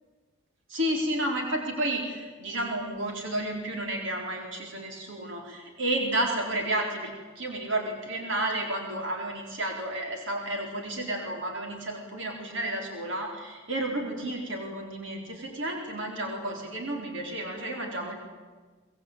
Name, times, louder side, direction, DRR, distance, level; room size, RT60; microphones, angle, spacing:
voice 1, 0.7-18.2, right 1 dB, 60° right, 1 dB, 4.3 m, -31 dB
23.5 x 20.5 x 9.0 m, 1.4 s
head